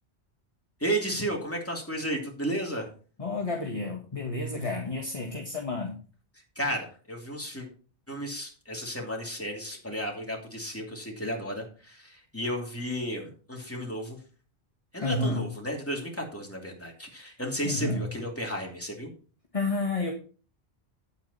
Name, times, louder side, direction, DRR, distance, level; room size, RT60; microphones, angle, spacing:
voice 1, 0.8-2.9 6.5-7.7 8.1-14.2 14.9-19.1, equal, 10° left, 0 dB, 2.9 m, -33 dB
voice 2, 3.2-6.0 15.0-15.5 17.6-18.1 19.5-20.1, left 2 dB, 30° left, 1 dB, 1.6 m, -30 dB
9.2 x 8.7 x 4.2 m, 0.38 s
omnidirectional pair, 1.1 m